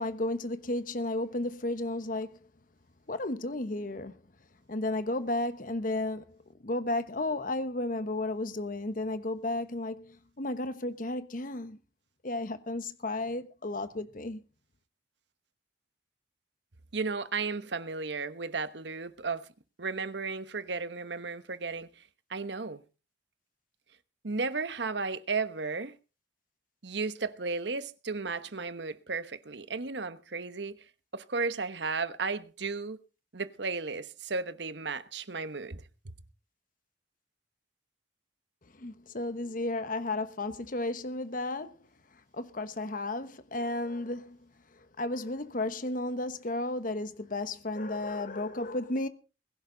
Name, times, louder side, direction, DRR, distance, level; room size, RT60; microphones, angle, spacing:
voice 1, 0.0-2.4 3.1-4.2 4.7-6.4 6.6-11.8 12.2-14.4 38.7-41.8 42.3-44.4 44.8-49.1, left 2 dB, 45° left, 1.1 m, -33 dB
voice 2, 16.9-19.5 19.8-22.0 22.3-22.8 24.2-26.0 26.8-30.8 31.1-33.0 33.3-36.2, right 4 dB, 65° right, 1.1 m, -34 dB
21.5 x 11.5 x 3.9 m
head